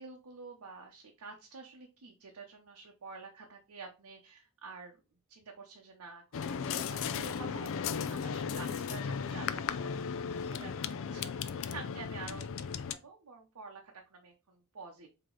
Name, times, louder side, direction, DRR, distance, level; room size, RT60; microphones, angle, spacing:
voice 1, 0.0-5.0 5.3-7.7 8.1-10.1 10.4-15.1, right 4 dB, 80° right, 1 dB, 0.7 m, -49 dB
sound 1, 6.3-12.9, left 6 dB, 60° left, 0.4 m, -36 dB
4.9 x 2.9 x 3.7 m, 0.30 s
head